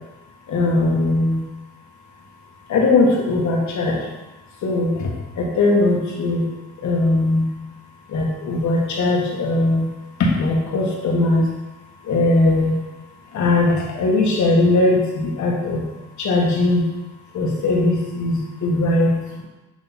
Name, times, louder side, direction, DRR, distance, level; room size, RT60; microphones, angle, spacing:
voice 1, 0.5-1.4 2.7-4.1 4.6-6.5 6.8-7.5 8.1-9.9 10.2-11.5 12.0-12.7 13.3-15.8 16.2-16.9 17.3-19.4, left 2 dB, 70° left, -2 dB, 1.5 m, -19 dB
7.8 x 3.1 x 4.1 m, 1.1 s
cardioid pair, 90°, 30 cm